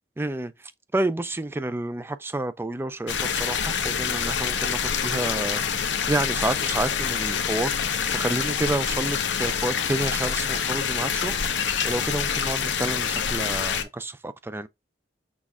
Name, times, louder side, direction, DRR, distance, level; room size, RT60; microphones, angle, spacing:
voice 1, 0.2-0.5 0.9-7.8 8.1-11.3 11.8-14.7, right 2 dB, 15° right, 0.4 m, -29 dB
sound 1, 3.1-13.8, left 7 dB, 85° left, 0.7 m, -26 dB
6.2 x 2.4 x 3.5 m
head